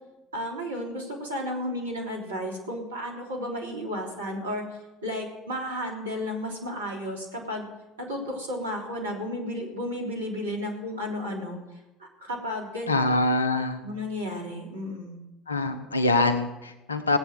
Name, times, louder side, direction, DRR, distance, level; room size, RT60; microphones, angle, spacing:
voice 1, 0.3-7.6 8.0-11.6 12.0-12.9 13.8-15.2, left 1 dB, 85° right, -1 dB, 3.4 m, -33 dB
voice 2, 12.9-13.8 15.5-17.2, left 2 dB, 85° left, 9 dB, 1.2 m, -24 dB
17.0 x 8.5 x 7.5 m, 1.0 s
figure-of-eight pair, 60°, 0 cm